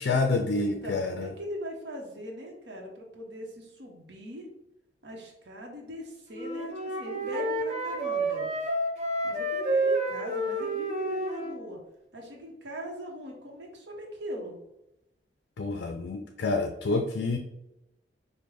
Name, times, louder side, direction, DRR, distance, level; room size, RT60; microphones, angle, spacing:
voice 1, 0.0-1.3 15.6-17.4, left 3 dB, 70° left, 5 dB, 0.4 m, -28 dB
voice 2, 0.5-4.5 5.0-8.5 9.2-11.8 12.1-14.6, equal, 80° right, 0 dB, 0.9 m, -40 dB
Wind instrument woodwind instrument, 6.3-11.6, right 1 dB, 40° right, 0.8 m, -29 dB
5.2 x 2.1 x 3.2 m, 0.88 s
head